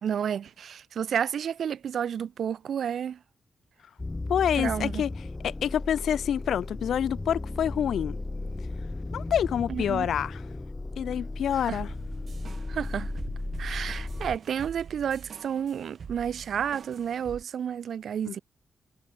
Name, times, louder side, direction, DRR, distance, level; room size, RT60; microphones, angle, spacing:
voice 1, 0.0-3.2 4.6-5.0 9.7-10.1 11.6-11.8 12.7-13.1 13.6-18.4, right 8 dB, 75° right, 1.7 m, -31 dB
sound 1, 4.0-14.4, left 2 dB, 20° left, 4.9 m, -35 dB
voice 2, 4.3-5.1 5.4-8.2 9.1-10.4 11.0-11.9 18.2-18.4, left 9 dB, 90° left, 1.1 m, -27 dB
sound 2, 11.7-17.4, right 6 dB, 55° right, 2.3 m, -45 dB
wide cardioid pair, 115°, 0 cm